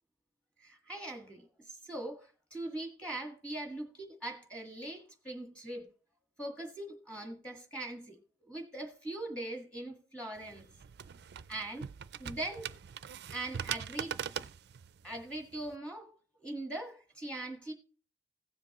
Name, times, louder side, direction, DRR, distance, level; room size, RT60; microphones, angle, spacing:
voice 1, 0.6-5.9 6.4-8.2 8.4-10.7 11.5-11.8 12.2-12.7 13.3-14.1 15.0-17.7, right 2 dB, 5° left, 1.7 m, -41 dB
sound 1, 10.4-15.8, right 8 dB, 65° right, 0.4 m, -42 dB
16.0 x 7.4 x 3.0 m
head